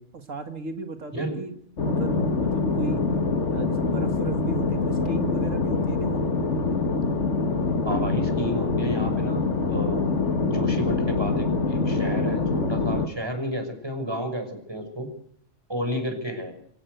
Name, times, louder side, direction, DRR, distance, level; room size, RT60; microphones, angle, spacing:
voice 1, 0.0-1.5 1.8-3.1 3.5-6.4, right 3 dB, 85° right, 7 dB, 2.2 m, -35 dB
sound 1, 1.8-13.1, left 4 dB, 65° left, 1.9 m, -25 dB
voice 2, 7.8-10.1 10.4-15.1 15.7-16.6, equal, 20° right, 6 dB, 6.0 m, -31 dB
25.5 x 17.5 x 8.0 m, 0.65 s
omnidirectional pair, 1.3 m